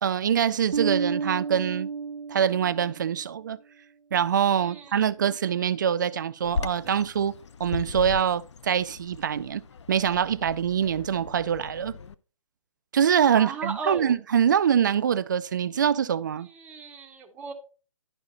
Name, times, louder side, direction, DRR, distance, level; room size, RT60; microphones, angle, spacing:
voice 1, 0.0-1.9 2.3-3.6 4.1-7.3 7.6-9.6 9.9-11.9 12.9-16.5, right 8 dB, 35° right, 0.3 m, -24 dB
Bass guitar, 0.7-3.2, right 5 dB, 85° right, 0.6 m, -31 dB
voice 2, 4.6-5.1 13.4-14.0 16.5-17.5, right 4 dB, 10° right, 0.7 m, -36 dB
Bird vocalization bird call bird song, 6.4-12.1, left 5 dB, 55° left, 0.5 m, -37 dB
11.0 x 5.1 x 4.0 m
hypercardioid pair, 150°, 18 cm